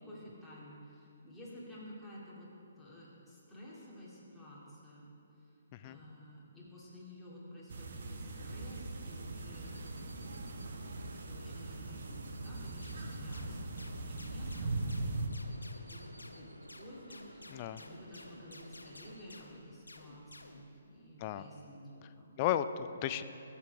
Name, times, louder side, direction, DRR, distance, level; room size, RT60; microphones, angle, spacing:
voice 1, 0.0-2.5 2.8-5.1 5.3-10.9 11.3-15.4 15.9-22.3, left 1 dB, ahead, -9 dB, 2.2 m, -52 dB
sound 1, 7.7-15.3, right 2 dB, 60° right, 0.9 m, -40 dB
sound 2, 8.4-19.2, right 1 dB, 90° right, 0.5 m, -55 dB
sound 3, 12.8-20.7, left 2 dB, 85° left, 0.7 m, -53 dB
voice 2, 17.5-17.8 21.2-21.4 22.4-23.2, left 11 dB, 35° left, 12 dB, 0.4 m, -34 dB
14.0 x 7.1 x 3.4 m, 2.8 s
figure-of-eight pair, 135°, 0 cm